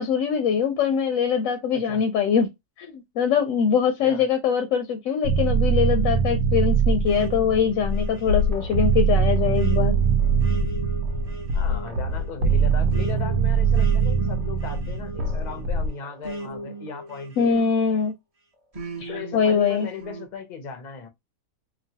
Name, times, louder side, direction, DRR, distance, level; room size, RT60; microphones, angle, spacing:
voice 1, 0.0-2.5 2.8-9.9 17.4-18.1 19.0-19.9, left 7 dB, 70° left, 0.9 m, -23 dB
sound 1, 5.2-15.9, right 5 dB, 80° right, 1.2 m, -22 dB
sound 2, 7.1-18.1 18.7-20.3, right 1 dB, 30° right, 0.7 m, -38 dB
voice 2, 11.5-17.6 19.1-21.1, left 6 dB, 50° left, 0.5 m, -37 dB
2.9 x 2.3 x 2.7 m
omnidirectional pair, 1.6 m